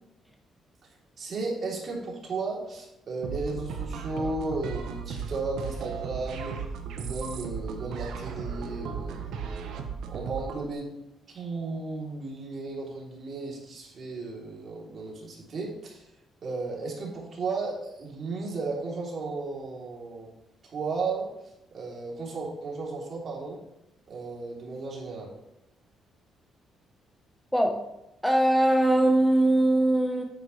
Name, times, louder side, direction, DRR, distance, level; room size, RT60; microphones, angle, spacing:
voice 1, 1.2-6.6 7.0-9.3 10.1-10.9 11.3-16.0 16.4-20.3 20.6-21.3 21.7-23.6 24.1-25.3, right 3 dB, 50° right, -3 dB, 3.2 m, -34 dB
sound 1, 3.2-10.7, right 6 dB, 80° right, 1.1 m, -36 dB
voice 2, 27.5-27.9 28.2-30.2, right 1 dB, 5° left, 2 dB, 1.0 m, -21 dB
9.4 x 9.0 x 3.2 m, 0.87 s
cardioid pair, 90°, 0 cm